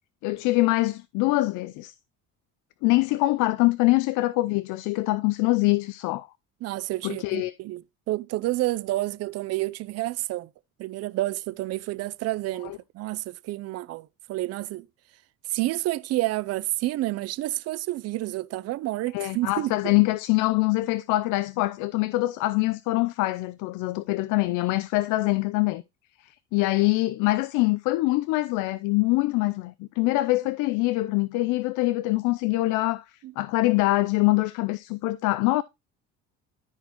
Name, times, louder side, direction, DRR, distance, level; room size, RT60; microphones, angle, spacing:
voice 1, 0.2-1.9 2.8-6.3 7.0-7.5 12.6-12.8 19.1-25.8 26.2-33.0 33.4-35.6, left 20 dB, 70° left, 0.5 m, -24 dB
voice 2, 6.6-10.5 10.8-14.9 15.5-20.0 33.2-33.3, right 17 dB, 50° right, 0.5 m, -29 dB
13.5 x 4.5 x 2.9 m
cardioid pair, 110°, 31 cm